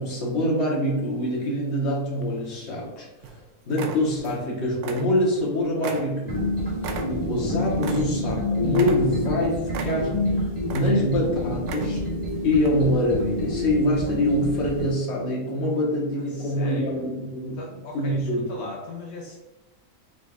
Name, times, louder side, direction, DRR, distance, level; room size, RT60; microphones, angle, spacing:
voice 1, 0.0-3.4 3.7-6.5 7.0-12.0 12.4-17.6 17.9-18.5, left 1 dB, 50° left, -4 dB, 1.5 m, -25 dB
sound 1, 2.2-2.9 3.2-3.4 3.7-4.5 4.7-5.5 5.8-8.4 8.7-9.3 9.7-10.3 10.6-11.2 11.6-12.2 12.6-12.7, right 5 dB, 85° right, 1.1 m, -36 dB
sound 2, 6.3-14.9, left 1 dB, 25° right, 1.6 m, -28 dB
voice 2, 16.3-17.1 17.6-19.4, left 2 dB, 75° left, -1 dB, 1.2 m, -39 dB
5.1 x 3.9 x 2.4 m, 1.1 s
omnidirectional pair, 1.6 m